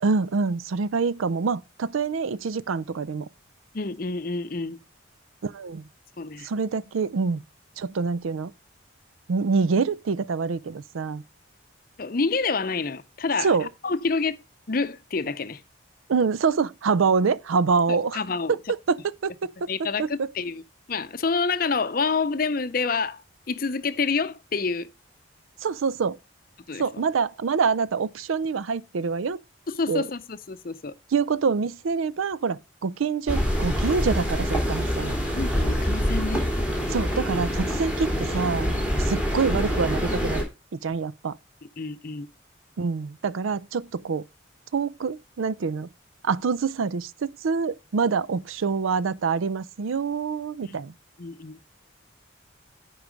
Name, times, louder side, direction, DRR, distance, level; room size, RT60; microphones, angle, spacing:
voice 1, 0.0-3.3 5.4-5.8 6.4-7.4 7.8-8.5 9.3-11.2 13.4-13.7 16.1-18.2 18.5-19.5 20.0-20.3 25.6-26.2 26.8-29.4 29.9-30.0 31.1-35.2 36.9-38.7 39.0-40.4 40.8-41.3 42.8-44.2 44.7-45.9 46.2-50.9, right 5 dB, 90° right, 0.5 m, -26 dB
voice 2, 3.7-4.8 6.2-6.5 12.0-14.4 14.7-15.6 17.9-18.6 19.7-20.6 20.9-23.2 23.5-24.9 26.7-26.8 29.7-30.9 35.3-36.5 41.8-42.3 50.6-50.8 51.2-51.6, left 4 dB, 45° left, 0.6 m, -28 dB
sound 1, 33.3-40.4, equal, 5° right, 2.3 m, -25 dB
9.8 x 4.7 x 5.1 m
head